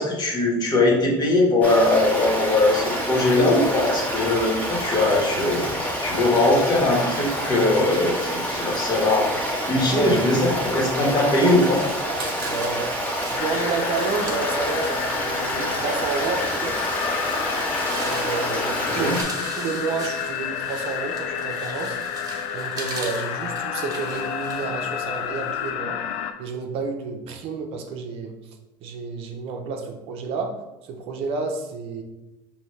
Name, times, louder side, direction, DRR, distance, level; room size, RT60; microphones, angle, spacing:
voice 1, 0.0-9.3 9.7-11.8 18.6-19.1, left 2 dB, 40° left, -2 dB, 1.5 m, -21 dB
Stream, 1.6-19.2, equal, 15° left, 1.4 m, -28 dB
voice 2, 9.8-10.1 12.3-13.0 13.3-16.8 18.0-19.1 19.5-22.0 22.5-26.0 26.4-32.0, right 4 dB, 60° right, 4 dB, 0.6 m, -30 dB
sound 1, 11.1-25.7, right 3 dB, 35° right, 1.3 m, -40 dB
sound 2, 13.4-26.3, left 8 dB, 70° left, 0.4 m, -30 dB
5.4 x 2.7 x 3.2 m, 1.0 s
supercardioid pair, 100°, 11 cm